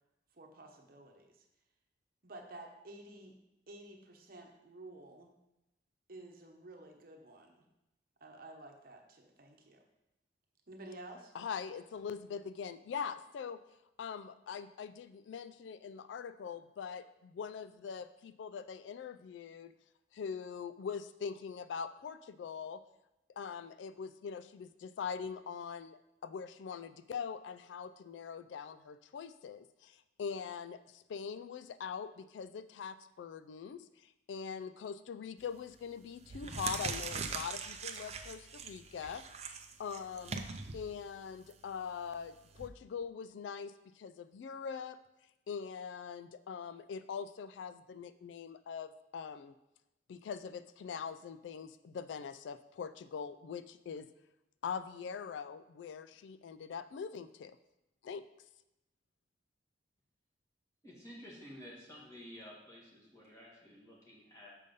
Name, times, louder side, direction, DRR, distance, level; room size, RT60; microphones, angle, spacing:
voice 1, 0.3-1.4 2.2-3.4 3.7-5.3 6.1-7.6 8.2-9.8 10.7-11.3, right 2 dB, 50° right, 2 dB, 0.9 m, -52 dB
voice 2, 11.3-13.6 14.0-19.7 20.1-22.8 23.4-40.4 40.7-45.0 45.5-49.5 50.1-54.1 54.6-57.6 58.0-58.2, left 6 dB, 80° left, 12 dB, 0.3 m, -43 dB
sound 1, 35.4-35.7 36.2-42.7, right 5 dB, 35° right, 0.5 m, -42 dB
voice 3, 60.8-64.5, equal, 15° left, -5 dB, 2.0 m, -52 dB
6.6 x 5.3 x 5.3 m, 0.92 s
head